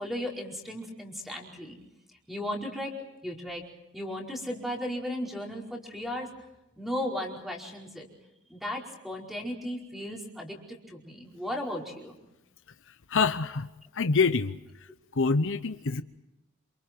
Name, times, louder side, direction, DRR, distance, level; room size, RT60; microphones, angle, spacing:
voice 1, 0.0-1.8 2.3-2.9 3.2-3.6 3.9-6.3 6.8-8.1 8.5-12.2, left 1 dB, ahead, -1 dB, 4.9 m, -35 dB
voice 2, 13.1-13.7 13.9-14.6 15.1-16.0, left 4 dB, 60° left, 11 dB, 0.8 m, -25 dB
28.5 x 28.0 x 4.6 m, 0.93 s
head